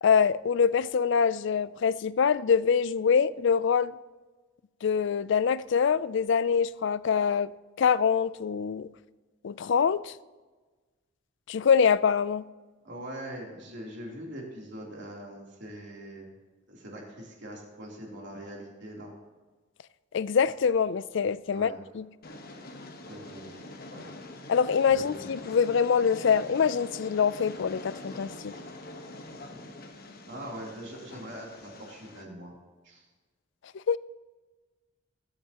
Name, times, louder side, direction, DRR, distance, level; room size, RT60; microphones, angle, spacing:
voice 1, 0.0-3.9 4.8-7.5 7.8-8.9 9.4-10.1 11.5-12.4 20.1-22.0 24.5-28.5 33.9-34.0, left 6 dB, 65° left, 0.4 m, -24 dB
voice 2, 12.8-16.3 16.7-19.1 21.5-21.8 23.1-23.6 23.9-24.0 24.9-25.2 29.5-29.7 30.3-32.5 32.8-33.0, right 1 dB, 65° right, 3.3 m, -42 dB
Train, 22.2-32.2, left 2 dB, 50° left, 1.2 m, -44 dB
22.0 x 8.8 x 3.0 m
head